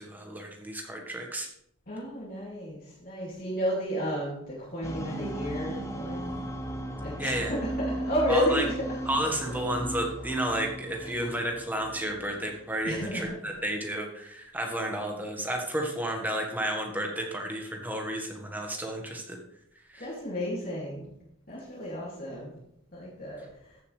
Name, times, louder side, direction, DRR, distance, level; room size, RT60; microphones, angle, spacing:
voice 1, 0.0-1.5 7.2-7.6 8.3-8.6 9.0-19.4 19.7-20.1, right 1 dB, 10° right, 1 dB, 1.6 m, -32 dB
voice 2, 1.9-6.4 7.0-9.0 9.4-9.7 11.0-11.3 12.8-13.6 20.0-21.1 21.5-22.5 22.9-23.4 23.7-23.8, equal, 45° left, -7 dB, 2.5 m, -32 dB
sound 1, 4.8-13.0, right 1 dB, 15° left, 0.9 m, -36 dB
14.5 x 6.9 x 3.4 m, 0.75 s
head